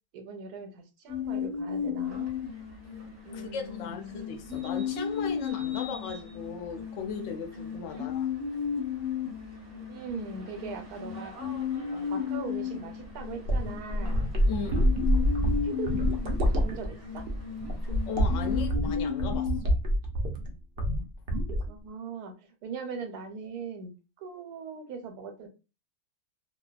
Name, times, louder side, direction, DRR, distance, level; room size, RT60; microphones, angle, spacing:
voice 1, 0.1-2.3 3.2-4.3 7.9-8.1 9.9-11.3 11.9-14.3 15.6-16.0 16.4-17.3 21.7-23.9 24.2-25.5, right 5 dB, 90° right, 1.1 m, -40 dB
sound 1, 1.1-19.6, left 7 dB, 10° left, 0.8 m, -35 dB
sound 2, 2.0-18.7, right 1 dB, 45° right, 0.7 m, -51 dB
voice 2, 3.3-4.0 4.3-8.3 14.5-14.9 18.1-19.7, left 6 dB, 65° left, 0.8 m, -37 dB
sound 3, 13.0-20.5 20.8-21.0 21.3-21.7, equal, 75° right, 0.5 m, -27 dB
2.6 x 2.2 x 2.3 m
omnidirectional pair, 1.6 m